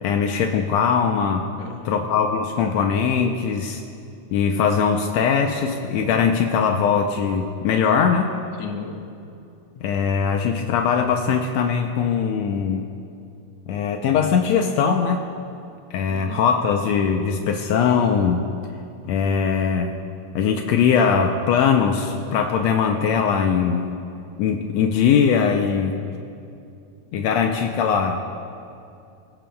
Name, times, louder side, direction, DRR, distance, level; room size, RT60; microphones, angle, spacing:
voice 1, 0.0-1.5 1.8-3.8 4.3-8.3 9.8-12.9 13.7-15.3 15.9-18.5 19.0-20.0 20.3-23.9 24.4-26.0 27.1-28.2, left 6 dB, 90° left, 4 dB, 1.5 m, -21 dB
voice 2, 1.6-2.1 8.6-9.0 16.1-16.4, left 5 dB, 70° left, 3 dB, 1.4 m, -34 dB
21.0 x 16.5 x 2.3 m, 2.6 s
omnidirectional pair, 3.8 m